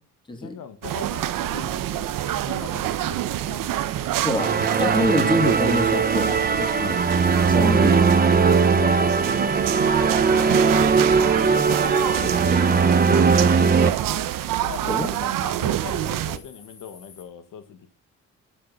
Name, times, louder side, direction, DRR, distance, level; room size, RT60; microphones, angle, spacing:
voice 1, 0.4-3.8 7.5-10.9 11.4-13.0 14.5-17.9, left 8 dB, 80° left, 1.7 m, -40 dB
sound 1, 0.8-16.4, right 13 dB, 85° right, 1.0 m, -27 dB
sound 2, 0.9-17.2, left 4 dB, 50° left, 4.7 m, -46 dB
voice 2, 4.2-7.0 7.4-8.0 12.5-12.6 14.9-15.1, left 1 dB, 15° left, 2.8 m, -26 dB
sound 3, 4.4-13.9, right 5 dB, 30° right, 0.9 m, -19 dB
11.5 x 7.7 x 4.1 m
cardioid pair, 90°, 32 cm